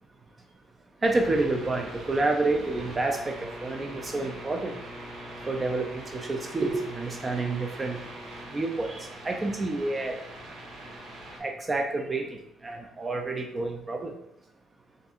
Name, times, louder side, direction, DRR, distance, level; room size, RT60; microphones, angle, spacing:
voice 1, 1.0-4.8 5.4-8.0 8.5-10.2 11.4-14.1, right 2 dB, 30° right, 3 dB, 0.5 m, -29 dB
sound 1, 1.0-11.4, right 1 dB, 60° right, 1.0 m, -42 dB
3.5 x 2.6 x 4.2 m, 0.82 s
cardioid pair, 90°, 0 cm